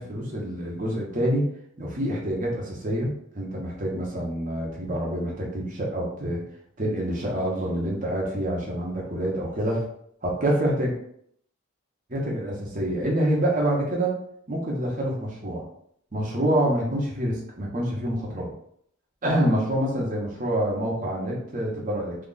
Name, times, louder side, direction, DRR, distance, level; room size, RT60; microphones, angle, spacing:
voice 1, 0.0-1.5 1.8-6.4 6.8-9.8 10.2-10.9 12.1-14.1 14.5-15.6 16.1-18.5 19.2-22.3, right 1 dB, 35° right, -3 dB, 0.9 m, -26 dB
2.9 x 2.3 x 3.9 m, 0.69 s
head